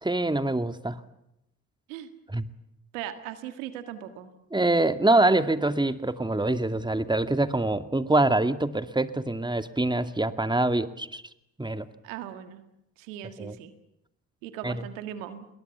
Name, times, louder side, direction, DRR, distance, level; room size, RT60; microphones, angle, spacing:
voice 1, 0.0-1.0 2.3-2.5 4.5-11.2 11.6-11.9 13.4-13.6 14.6-14.8, right 2 dB, 10° right, 10 dB, 2.2 m, -25 dB
voice 2, 2.9-4.3 12.0-12.6 13.0-13.7 14.4-15.5, right 11 dB, 90° right, 10 dB, 1.8 m, -38 dB
28.0 x 21.5 x 7.0 m, 0.81 s
hypercardioid pair, 40°, 38 cm